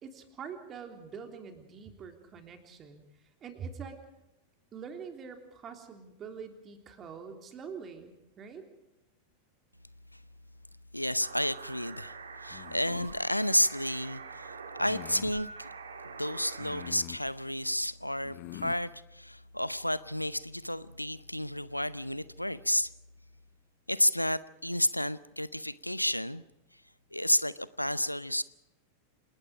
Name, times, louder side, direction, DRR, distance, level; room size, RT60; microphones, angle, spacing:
voice 1, 0.0-3.0 3.4-4.0 4.7-8.7, right 6 dB, 25° right, 3.4 m, -44 dB
voice 2, 10.9-15.7 16.0-22.9 23.9-26.4 27.1-28.4, left 1 dB, 90° left, 0.6 m, -31 dB
sound 1, 11.2-16.9, right 5 dB, 70° right, 2.3 m, -45 dB
sound 2, 12.5-13.2 14.8-15.4 16.6-17.3 18.2-18.8, left 18 dB, 45° left, 1.1 m, -45 dB
28.0 x 19.5 x 5.1 m
figure-of-eight pair, 90°, 0 cm